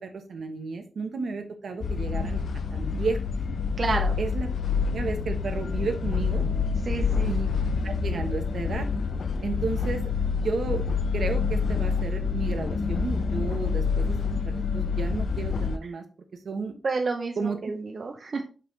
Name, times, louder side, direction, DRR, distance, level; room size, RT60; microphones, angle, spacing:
voice 1, 0.0-2.4 2.7-3.2 4.2-4.5 4.9-6.5 7.2-7.5 7.8-8.9 9.4-10.1 10.4-10.8 11.1-14.2 14.5-16.0 16.4-16.7 17.4-17.6, right 4 dB, 70° right, 6 dB, 1.0 m, -32 dB
sound 1, 1.8-15.8, left 5 dB, 75° left, 0.5 m, -27 dB
voice 2, 3.8-4.2 6.8-7.3 16.8-18.4, right 4 dB, 45° right, 4 dB, 0.6 m, -29 dB
5.8 x 5.5 x 3.2 m, 0.36 s
wide cardioid pair, 155°, 0 cm